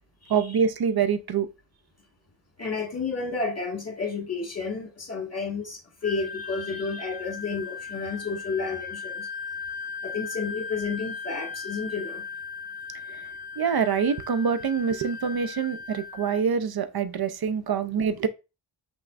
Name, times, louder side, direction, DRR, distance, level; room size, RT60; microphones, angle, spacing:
voice 1, 0.3-1.5 13.1-13.3 13.6-18.3, right 6 dB, 50° right, 0.6 m, -25 dB
voice 2, 2.6-9.3 10.0-12.2, left 4 dB, 30° left, 1.8 m, -31 dB
Wind instrument woodwind instrument, 6.0-16.4, left 5 dB, 50° left, 0.9 m, -37 dB
5.8 x 3.6 x 2.5 m
wide cardioid pair, 105°, 49 cm